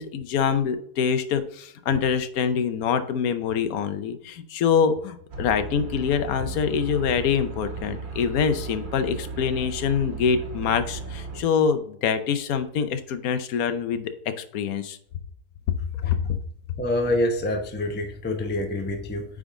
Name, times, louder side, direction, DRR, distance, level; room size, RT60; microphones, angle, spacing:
voice 1, 0.0-14.1 14.4-15.0 15.7-15.8 16.0-16.4, left 7 dB, 70° left, 9 dB, 1.2 m, -25 dB
sound 1, 5.3-11.4, right 4 dB, 45° right, 1.4 m, -36 dB
voice 2, 16.8-19.2, left 1 dB, 10° left, 4 dB, 0.6 m, -26 dB
8.9 x 3.7 x 3.7 m, 0.69 s
omnidirectional pair, 1.7 m